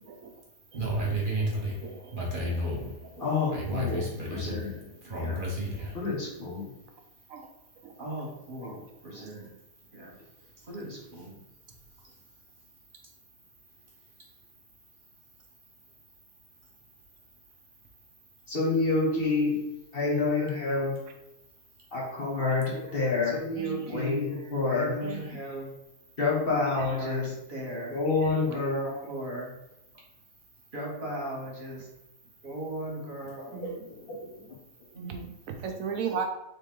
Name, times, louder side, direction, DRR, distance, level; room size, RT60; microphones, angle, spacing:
voice 1, 0.7-6.0 8.0-9.5 9.9-10.1 10.7-11.3 23.3-25.7 26.5-29.5 30.7-31.9 32.4-33.6 34.9-35.3, right 1 dB, 40° right, -3 dB, 1.2 m, -35 dB
voice 2, 1.8-2.5 2.8-2.9 7.3-7.5 7.8-7.9 22.7-23.0 23.5-23.9 26.8-26.9 33.5-33.9 35.5-36.2, right 6 dB, 80° right, 4 dB, 1.0 m, -36 dB
voice 3, 3.2-4.8 5.2-5.4 5.9-6.7 18.5-21.0 21.9-23.4 23.9-25.0 26.2-27.3 27.9-29.1 33.4-34.5, left 3 dB, 45° left, -5 dB, 1.4 m, -28 dB
3.8 x 3.6 x 3.7 m, 0.89 s
omnidirectional pair, 1.5 m